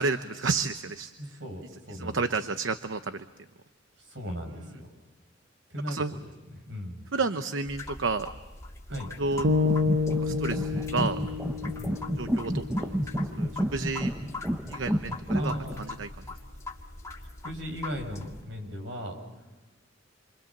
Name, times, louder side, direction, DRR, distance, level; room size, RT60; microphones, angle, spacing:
voice 1, 0.0-1.1 1.9-3.3 5.9-6.1 7.1-8.3 9.2-9.5 10.2-11.2 12.2-13.0 13.3-14.1 14.7-15.5 15.9-16.1, right 4 dB, 90° right, 10 dB, 0.9 m, -30 dB
voice 2, 1.2-2.2 4.0-4.9 5.7-6.3 6.7-7.1 8.9-9.1 11.7-11.9 15.3-15.9 17.4-19.1, equal, 75° right, 4 dB, 6.5 m, -37 dB
sound 1, 7.7-18.4, left 2 dB, 15° left, 2.3 m, -42 dB
sound 2, 9.3-15.7, equal, 10° right, 0.8 m, -31 dB
sound 3, 9.4-13.6, left 4 dB, 55° right, 1.0 m, -29 dB
29.0 x 25.0 x 7.3 m, 1.2 s
head